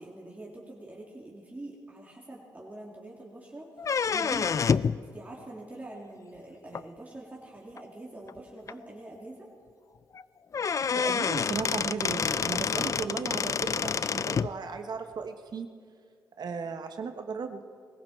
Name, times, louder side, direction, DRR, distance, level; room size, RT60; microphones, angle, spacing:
voice 1, 0.0-3.7 4.1-4.7 5.0-9.5 12.7-13.0, right 2 dB, 20° right, -4 dB, 2.9 m, -44 dB
sound 1, 3.8-5.0 6.7-6.8 7.8-7.9 8.3-8.4 8.7-8.8 10.1-10.2 10.5-14.5, left 6 dB, 40° left, 0.3 m, -28 dB
voice 2, 10.9-15.7 16.4-17.6, right 5 dB, 55° right, 7 dB, 1.0 m, -36 dB
20.5 x 15.0 x 4.3 m, 2.1 s
cardioid pair, 70°, 8 cm